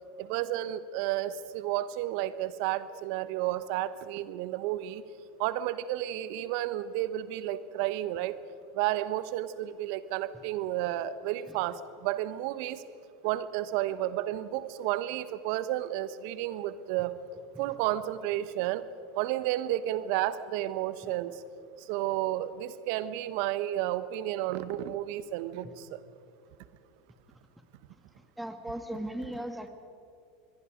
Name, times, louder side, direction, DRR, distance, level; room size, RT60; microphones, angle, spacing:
voice 1, 0.2-5.0 5.4-8.4 8.7-12.8 13.2-17.1 17.6-18.9 19.1-21.4 21.8-26.0, right 13 dB, 60° right, 15 dB, 1.0 m, -32 dB
voice 2, 28.4-29.7, right 1 dB, 5° right, 7 dB, 2.1 m, -37 dB
26.0 x 21.5 x 5.2 m, 2.6 s
hypercardioid pair, 85°, 0 cm